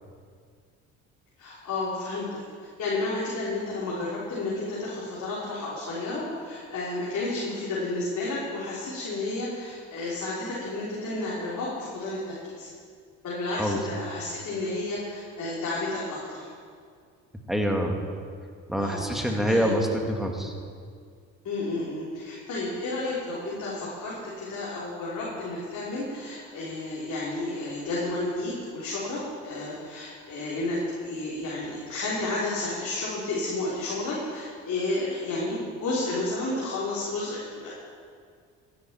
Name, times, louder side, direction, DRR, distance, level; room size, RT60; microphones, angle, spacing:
voice 1, 1.4-2.4 2.8-12.7 13.2-16.5 18.8-19.7 21.4-37.7, left 2 dB, 55° left, -7 dB, 3.6 m, -31 dB
voice 2, 17.5-17.9 18.7-20.5, equal, ahead, 2 dB, 2.1 m, -25 dB
15.0 x 10.5 x 4.4 m, 2.1 s
supercardioid pair, 70°, 34 cm